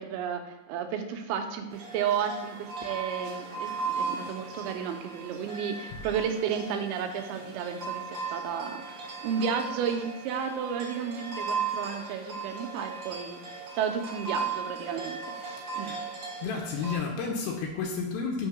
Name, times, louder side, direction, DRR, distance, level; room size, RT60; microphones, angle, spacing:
voice 1, 0.0-8.8 9.2-15.9, right 7 dB, 85° right, 6 dB, 2.5 m, -33 dB
sound 1, 1.7-17.0, right 4 dB, 55° right, 2.4 m, -37 dB
voice 2, 15.8-16.1 16.4-18.5, left 5 dB, 80° left, 0 dB, 2.4 m, -32 dB
6.1 x 3.6 x 5.8 m, 0.98 s
omnidirectional pair, 4.4 m